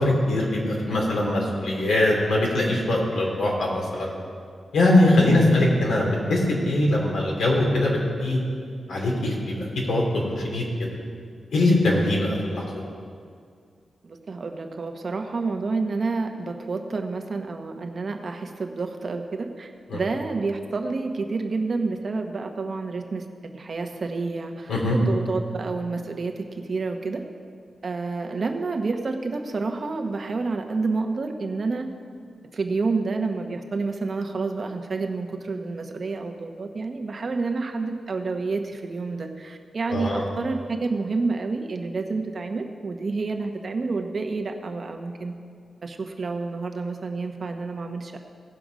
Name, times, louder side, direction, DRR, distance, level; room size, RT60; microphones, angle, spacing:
voice 1, 0.0-4.1 4.7-8.4 8.9-10.6 11.5-12.8 19.9-20.0 24.7-25.0 39.9-40.2, left 1 dB, 90° left, -2 dB, 2.8 m, -22 dB
voice 2, 14.0-27.2 27.8-31.9 32.5-45.3 45.8-48.2, right 3 dB, 50° right, 4 dB, 1.0 m, -29 dB
17.0 x 6.0 x 5.1 m, 2.2 s
cardioid pair, 80°, 0 cm